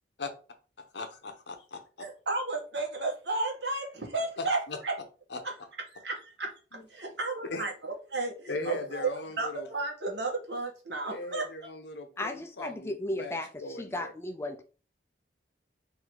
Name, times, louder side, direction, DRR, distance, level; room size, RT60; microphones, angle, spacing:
voice 1, 0.9-2.1 4.4-4.8 5.3-5.4 6.7-6.8 7.5-7.7 8.5-9.7 11.0-14.1, left 3 dB, 70° left, 0.8 m, -39 dB
voice 2, 2.0-4.9 5.4-5.5 5.9-6.5 6.9-11.4, right 3 dB, 65° right, 1.4 m, -33 dB
voice 3, 12.2-14.6, left 1 dB, 15° left, 0.4 m, -35 dB
3.9 x 2.7 x 4.6 m
head